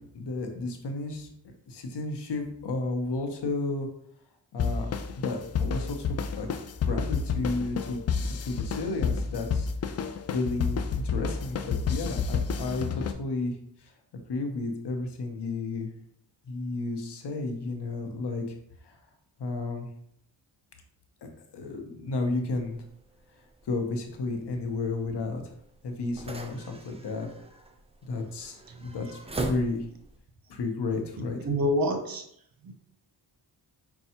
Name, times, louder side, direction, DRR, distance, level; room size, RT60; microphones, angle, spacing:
voice 1, 0.1-3.9 4.5-6.5 6.9-9.7 10.0-13.9 14.3-15.9 16.5-18.6 18.8-19.0 19.4-19.9 21.2-22.8 23.6-25.5 25.8-27.3 28.1-29.9 30.5-31.4, left 3 dB, 60° left, 4 dB, 0.8 m, -32 dB
sound 1, 4.6-13.1, left 5 dB, 35° left, 0.4 m, -30 dB
sound 2, 22.5-30.2, right 2 dB, 15° right, 0.5 m, -41 dB
voice 2, 31.4-32.2 32.6-32.7, equal, 50° right, 5 dB, 0.8 m, -26 dB
5.2 x 2.3 x 2.8 m, 0.68 s
supercardioid pair, 45°, 47 cm